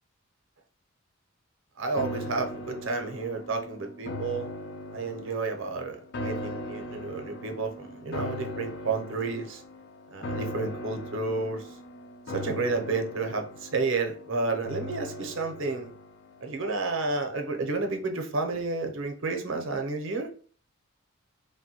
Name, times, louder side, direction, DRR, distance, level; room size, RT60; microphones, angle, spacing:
voice 1, 1.8-4.5 4.9-9.6 10.1-11.6 12.3-15.9 16.4-20.3, right 3 dB, 65° right, 5 dB, 0.6 m, -31 dB
sound 1, 2.0-17.3 17.6-17.7, left 1 dB, 60° left, 0.4 m, -39 dB
3.2 x 2.1 x 2.7 m, 0.43 s
head